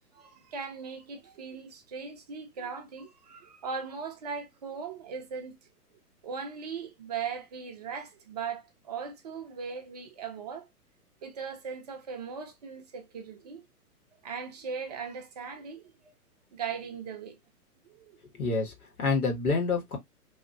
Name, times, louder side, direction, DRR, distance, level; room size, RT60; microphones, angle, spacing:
voice 1, 0.1-5.6 6.2-10.7 11.2-13.6 14.2-16.1 16.5-17.4 17.8-18.2, right 6 dB, 25° right, 0.5 m, -39 dB
voice 2, 18.3-20.0, left 4 dB, 65° left, 1.5 m, -28 dB
2.9 x 2.8 x 2.4 m
figure-of-eight pair, 115°, 46 cm